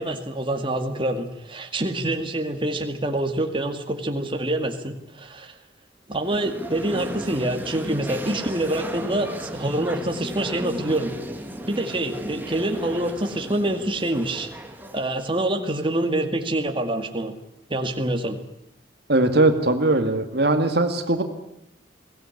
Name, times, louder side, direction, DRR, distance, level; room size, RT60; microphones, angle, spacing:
voice 1, 0.0-5.5 6.1-11.1 11.7-14.5 14.9-17.3 17.7-18.4, right 1 dB, 25° right, 5 dB, 2.1 m, -26 dB
sound 1, 6.1-16.1, equal, 10° right, 2.1 m, -35 dB
voice 2, 19.1-21.2, right 2 dB, 60° right, 7 dB, 2.0 m, -20 dB
23.0 x 17.5 x 9.8 m, 0.79 s
head